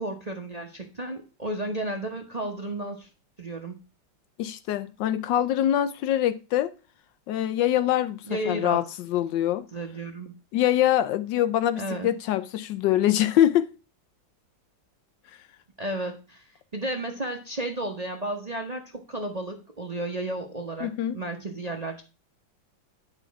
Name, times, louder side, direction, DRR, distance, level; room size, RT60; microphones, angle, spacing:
voice 1, 0.0-3.1 3.4-3.8 8.3-8.8 9.7-10.3 11.8-12.1 15.8-22.0, right 1 dB, 30° right, 0.8 m, -33 dB
voice 2, 4.4-6.7 7.3-9.6 10.5-13.7 20.8-21.2, left 12 dB, 75° left, 1.2 m, -24 dB
9.8 x 5.2 x 4.6 m
omnidirectional pair, 2.1 m